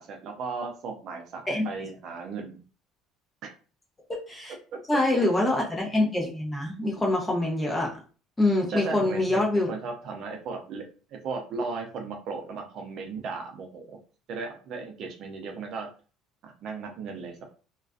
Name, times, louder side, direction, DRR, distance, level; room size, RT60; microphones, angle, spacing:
voice 1, 0.0-2.6 3.4-3.5 4.7-5.0 8.7-10.9 11.2-14.0 14.3-15.9 16.4-17.4, right 4 dB, 50° right, 3 dB, 0.5 m, -36 dB
voice 2, 4.1-4.5 4.9-7.9 8.4-9.7, left 2 dB, 10° left, -1 dB, 0.7 m, -25 dB
2.4 x 2.2 x 2.4 m, 0.38 s
cardioid pair, 135°, 0 cm